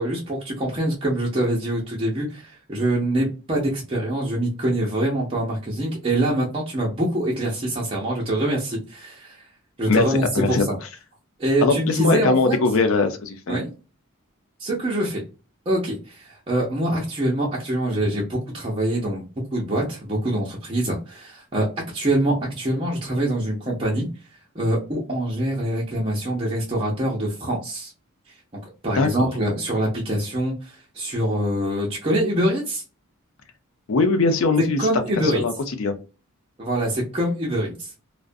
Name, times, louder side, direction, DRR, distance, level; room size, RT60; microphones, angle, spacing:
voice 1, 0.0-9.4 9.8-10.8 11.4-12.6 13.5-13.7 14.6-15.2 15.7-19.2 19.5-21.7 21.9-24.1 24.5-27.9 28.8-32.8 34.8-35.4 36.6-37.9, right 1 dB, 25° right, -5 dB, 0.6 m, -24 dB
voice 2, 9.9-10.6 11.6-13.6 28.9-29.3 33.9-34.9 35.2-35.5 35.8-35.9, left 3 dB, 75° left, 7 dB, 0.5 m, -21 dB
2.4 x 2.1 x 2.4 m, 0.33 s
head